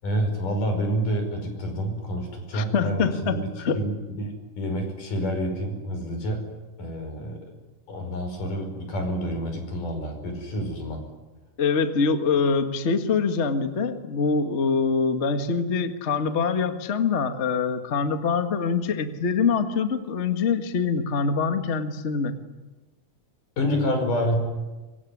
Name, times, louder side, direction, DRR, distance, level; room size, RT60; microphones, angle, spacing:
voice 1, 0.0-6.4 6.8-7.4 7.9-11.0 23.6-24.4, equal, 85° left, 5 dB, 6.8 m, -28 dB
voice 2, 2.5-3.8 11.6-22.3, left 5 dB, 35° left, 8 dB, 1.2 m, -24 dB
24.5 x 23.5 x 9.8 m, 1.2 s
omnidirectional pair, 3.6 m